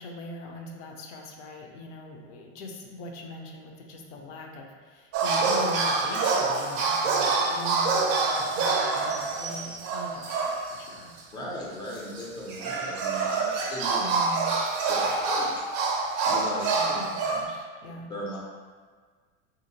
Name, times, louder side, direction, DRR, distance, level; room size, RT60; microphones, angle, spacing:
voice 1, 0.0-11.1 14.0-14.5 16.7-18.1, left 1 dB, 65° left, 1 dB, 0.6 m, -41 dB
sound 1, 5.1-10.9 11.2-11.3 12.2-17.4, right 4 dB, 45° right, 0.5 m, -26 dB
voice 2, 11.3-14.0 14.9-15.5 16.3-16.7 18.1-18.4, equal, 10° left, -4 dB, 0.3 m, -37 dB
2.7 x 2.4 x 2.7 m, 1.5 s
supercardioid pair, 125°, 39 cm